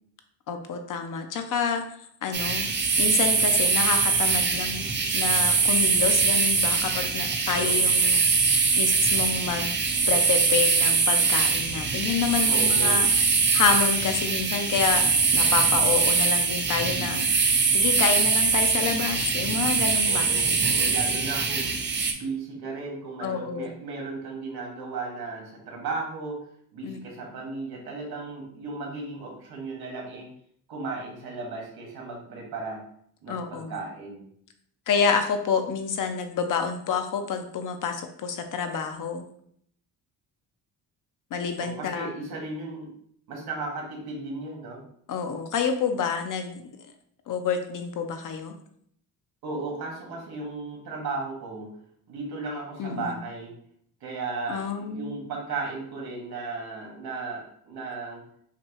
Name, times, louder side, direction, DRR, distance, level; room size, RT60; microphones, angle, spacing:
voice 1, 0.5-1.8 2.2-2.7 3.0-8.3 8.8-9.8 10.1-13.1 13.5-15.0 15.3-17.3 17.7-20.6 23.2-23.7 26.8-27.0 33.3-33.8 34.9-39.2 41.3-42.1 45.1-46.6 47.3-48.5 52.8-53.2 54.5-55.1, left 6 dB, 50° left, 6 dB, 0.6 m, -28 dB
sound 1, 2.3-22.1, right 4 dB, 30° right, 0.6 m, -23 dB
voice 2, 7.6-7.9 12.5-13.1 20.1-21.8 22.1-26.5 26.7-30.3 30.7-32.8 33.2-34.2 41.6-42.9 43.3-44.8 49.4-51.8 52.1-53.5 54.0-58.2, right 3 dB, 65° right, -1 dB, 1.6 m, -35 dB
5.8 x 2.3 x 2.9 m, 0.66 s
cardioid pair, 130°, 40 cm